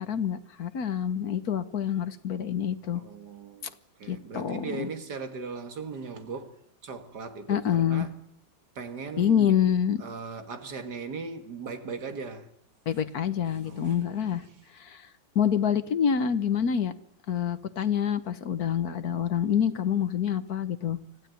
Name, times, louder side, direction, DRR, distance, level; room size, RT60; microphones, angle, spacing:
voice 1, 0.0-3.0 4.1-4.9 7.5-8.1 9.2-10.0 12.9-14.4 14.8-15.1 15.3-16.9 17.3-21.0, left 8 dB, 55° left, 1.5 m, -27 dB
voice 2, 2.9-3.7 4.0-6.5 6.8-8.1 8.8-9.5 10.0-12.5 13.6-14.3, right 4 dB, 55° right, 2.4 m, -38 dB
25.5 x 16.0 x 9.3 m
omnidirectional pair, 2.1 m